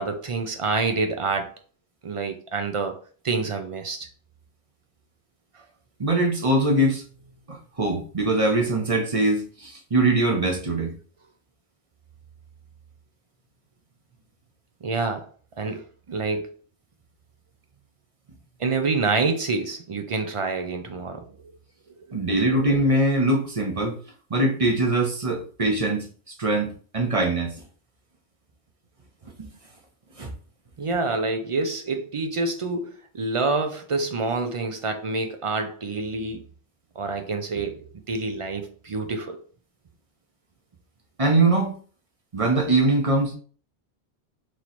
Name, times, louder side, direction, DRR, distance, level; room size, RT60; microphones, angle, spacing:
voice 1, 0.0-1.5 2.0-2.9 3.2-4.1 14.8-15.3 15.6-15.8 16.1-16.5 18.6-21.2 30.8-36.4 37.0-39.4, right 3 dB, 55° right, 6 dB, 0.3 m, -27 dB
voice 2, 6.0-7.0 7.5-10.9 22.1-24.0 24.3-27.5 29.4-29.5 30.2-30.3 41.2-41.7 42.3-43.3, right 2 dB, 35° right, 1 dB, 0.8 m, -22 dB
3.1 x 3.0 x 4.0 m, 0.42 s
omnidirectional pair, 1.1 m